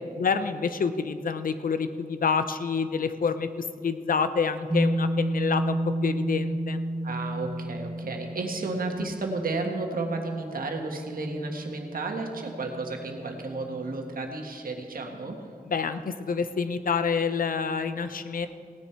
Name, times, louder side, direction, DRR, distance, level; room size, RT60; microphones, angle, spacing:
voice 1, 0.2-6.8 15.7-18.5, left 5 dB, 70° left, 11 dB, 0.6 m, -28 dB
sound 1, 4.7-14.2, right 1 dB, 10° right, 0.8 m, -32 dB
voice 2, 7.0-15.4, right 3 dB, 75° right, 3 dB, 1.5 m, -32 dB
17.0 x 10.0 x 4.5 m, 2.2 s
wide cardioid pair, 140°, 15 cm